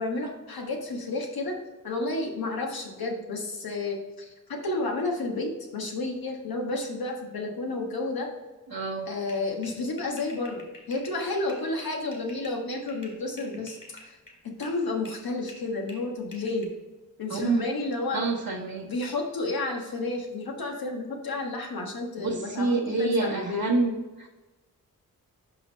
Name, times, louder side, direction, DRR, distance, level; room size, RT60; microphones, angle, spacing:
voice 1, 0.0-8.3 9.1-14.2 14.4-16.7 17.2-18.2 18.8-23.6, left 2 dB, 80° left, 1 dB, 1.5 m, -31 dB
voice 2, 8.7-9.1 17.3-17.6 18.1-18.9 22.2-24.3, right 3 dB, 70° right, -3 dB, 1.0 m, -27 dB
sound 1, 9.3-14.8 15.1-16.7, left 1 dB, 30° left, 2.4 m, -50 dB
5.8 x 5.6 x 4.1 m, 1.2 s
cardioid pair, 65°, 35 cm